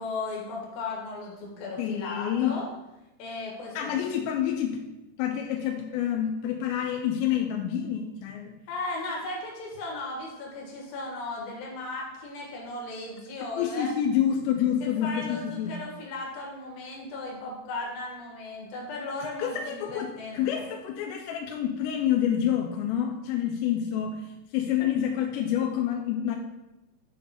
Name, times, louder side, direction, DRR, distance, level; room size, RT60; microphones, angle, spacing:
voice 1, 0.0-2.7 3.2-4.1 8.7-13.9 14.8-20.4, left 2 dB, 60° left, -2 dB, 2.7 m, -36 dB
voice 2, 1.8-2.6 3.8-4.8 5.2-8.5 13.6-15.8 19.4-24.3 24.5-26.4, left 9 dB, 85° left, 4 dB, 2.5 m, -28 dB
7.8 x 3.4 x 5.5 m, 0.97 s
omnidirectional pair, 5.6 m